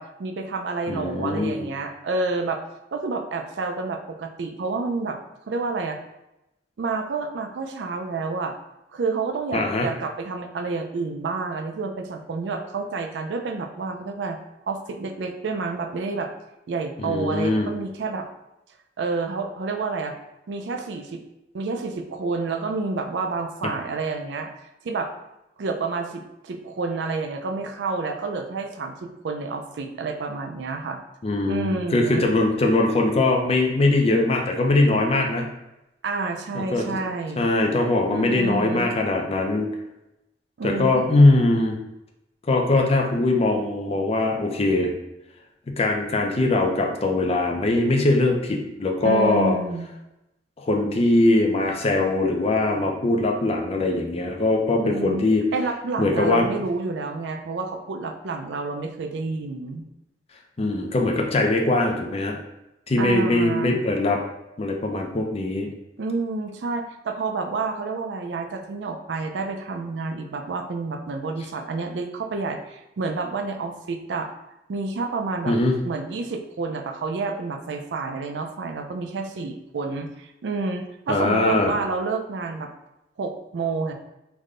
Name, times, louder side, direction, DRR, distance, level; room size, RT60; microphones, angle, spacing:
voice 1, 0.0-2.6 2.9-5.2 5.5-6.0 6.8-8.5 8.9-14.4 14.7-16.3 16.7-18.3 19.0-20.2 20.5-21.2 21.5-24.5 24.8-25.1 25.6-31.0 31.4-32.2 36.0-37.5 38.1-38.9 40.6-41.2 49.0-49.9 54.8-59.8 63.0-63.7 66.0-74.3 74.7-75.5 75.8-82.7 83.2-83.9, right 3 dB, 80° right, 5 dB, 0.4 m, -29 dB
voice 2, 0.9-1.7 9.5-9.9 17.0-17.7 31.2-35.5 36.5-36.9 37.4-39.7 40.6-41.8 42.5-44.9 45.8-49.6 50.6-55.4 56.0-56.5 60.6-62.4 62.9-64.2 64.6-65.7 75.5-75.8 81.1-81.7, left 2 dB, 35° left, 2 dB, 0.4 m, -21 dB
3.4 x 2.2 x 3.7 m, 0.91 s
head